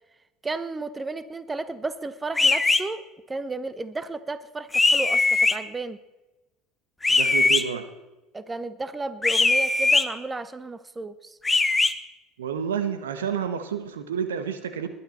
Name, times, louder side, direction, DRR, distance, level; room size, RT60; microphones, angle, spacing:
voice 1, 0.4-5.2 5.5-6.0 8.3-11.4, right 3 dB, 20° right, 14 dB, 1.0 m, -33 dB
sound 1, 2.4-2.8 4.7-5.6 7.0-7.6 9.2-10.0 11.4-11.9, left 3 dB, 15° left, 1.1 m, -20 dB
voice 2, 7.1-7.9 12.4-14.9, right 8 dB, 80° right, 10 dB, 1.1 m, -29 dB
20.5 x 10.0 x 4.3 m, 1.0 s
hypercardioid pair, 65°, 0 cm